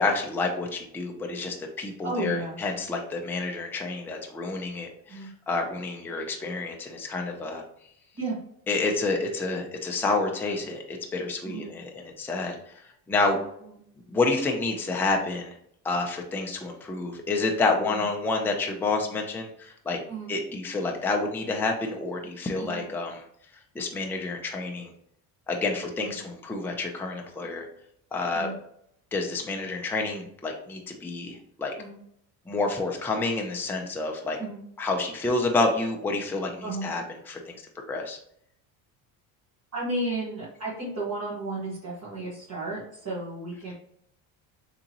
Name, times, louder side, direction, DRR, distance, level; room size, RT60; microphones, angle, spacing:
voice 1, 0.0-7.6 8.7-12.7 13.1-13.4 14.1-15.6 15.8-20.0 20.3-23.2 23.7-24.9 25.5-27.7 28.1-28.5 29.1-31.7 32.5-34.4 34.8-37.6 37.9-38.2, left 3 dB, 5° left, 1 dB, 0.5 m, -29 dB
voice 2, 2.0-2.6 5.1-5.3 8.2-8.4 11.4-11.7 13.6-13.8 17.9-18.0 20.1-20.3 22.6-22.8 26.0-26.1 28.3-28.5 31.8-32.0 34.4-34.6 36.6-36.9 39.7-43.7, right 2 dB, 35° right, -8 dB, 1.5 m, -33 dB
3.5 x 2.9 x 2.9 m, 0.71 s
supercardioid pair, 85°, 46 cm